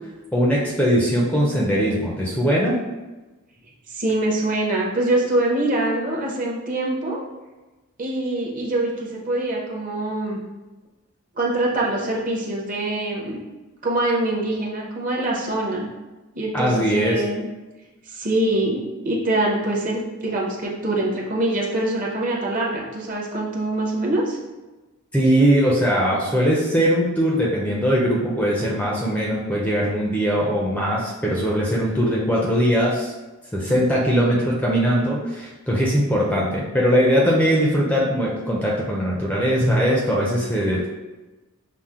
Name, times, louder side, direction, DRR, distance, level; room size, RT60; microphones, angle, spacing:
voice 1, 0.3-2.8 16.5-17.2 25.1-33.1 33.5-40.9, equal, 5° left, -4 dB, 0.5 m, -20 dB
voice 2, 3.9-7.2 8.0-10.4 11.4-13.4 13.8-15.9 16.3-17.5 18.1-24.4, right 1 dB, 40° right, -3 dB, 0.8 m, -24 dB
5.7 x 2.1 x 3.6 m, 1.1 s
head